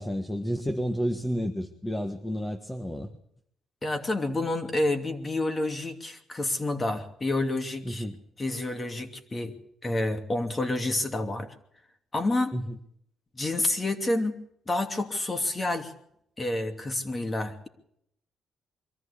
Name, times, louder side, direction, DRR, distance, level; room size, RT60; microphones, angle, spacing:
voice 1, 0.0-3.1 7.8-8.2 12.5-12.8, equal, 10° left, 6 dB, 1.6 m, -31 dB
voice 2, 3.8-8.1 8.4-9.5 9.8-11.5 12.1-12.6 13.3-14.4 14.7-15.9 16.4-17.7, left 2 dB, 25° left, 6 dB, 2.8 m, -29 dB
23.0 x 14.0 x 8.4 m, 0.73 s
cardioid pair, 90°, 0 cm